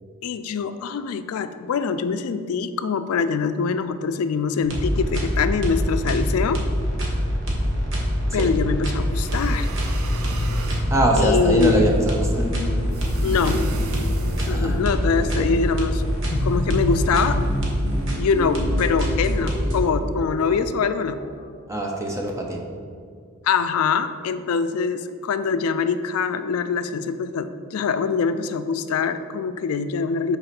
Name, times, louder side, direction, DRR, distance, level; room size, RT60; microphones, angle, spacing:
voice 1, 0.2-6.6 8.3-9.7 11.2-12.0 13.2-13.7 14.5-16.0 16.4-17.4 18.1-21.2 23.4-30.4, left 5 dB, 85° left, 11 dB, 0.4 m, -24 dB
sound 1, 4.6-19.8, equal, 60° right, 1.3 m, -24 dB
sound 2, 9.0-10.9 12.9-14.8, right 2 dB, 85° right, 0.6 m, -35 dB
sound 3, 9.7-21.4, left 1 dB, 35° left, 1.6 m, -32 dB
voice 2, 10.9-12.4 14.4-14.8 15.2-15.5 21.7-22.6, right 1 dB, 15° right, 0 dB, 0.7 m, -23 dB
5.5 x 4.2 x 5.9 m, 2.2 s
head